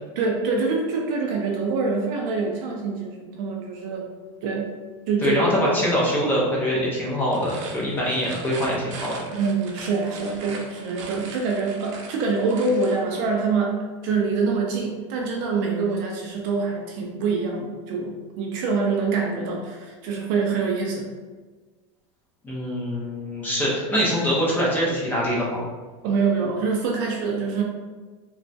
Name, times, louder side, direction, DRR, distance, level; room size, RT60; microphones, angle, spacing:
voice 1, 0.2-4.1 4.4-4.7 5.1-5.7 9.3-21.1 26.0-27.6, right 4 dB, 45° right, 0 dB, 0.4 m, -25 dB
voice 2, 5.2-9.2 22.4-25.6, equal, 10° left, -5 dB, 0.5 m, -24 dB
sound 1, 7.2-13.0, right 3 dB, 90° right, 0.6 m, -40 dB
3.0 x 2.2 x 2.5 m, 1.3 s
supercardioid pair, 175°, 16 cm